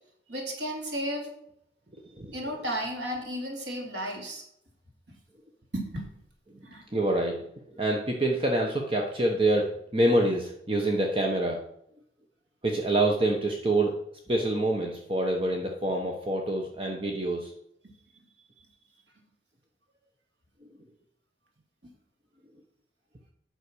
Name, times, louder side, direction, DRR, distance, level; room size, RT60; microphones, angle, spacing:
voice 1, 0.3-1.3 2.3-4.4 5.1-5.2 5.7-6.0 6.6-6.8 17.0-17.1 18.6-18.7, equal, 90° right, 0 dB, 3.1 m, -34 dB
voice 2, 6.9-11.6 12.6-14.0 14.3-17.5, right 1 dB, 30° right, 1 dB, 1.1 m, -26 dB
9.9 x 6.3 x 6.3 m, 0.74 s
head